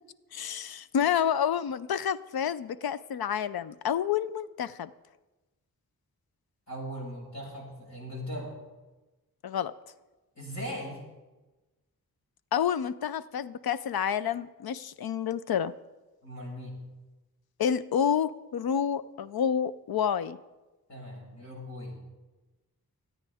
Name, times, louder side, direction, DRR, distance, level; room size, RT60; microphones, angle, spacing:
voice 1, 0.3-4.9 9.4-9.7 12.5-15.7 17.6-20.4, left 8 dB, 85° left, 16 dB, 0.6 m, -29 dB
voice 2, 6.7-8.5 10.3-11.0 16.2-16.8 20.9-22.0, equal, 50° left, -3 dB, 5.9 m, -39 dB
28.0 x 9.5 x 3.5 m, 1.1 s
wide cardioid pair, 110°, 36 cm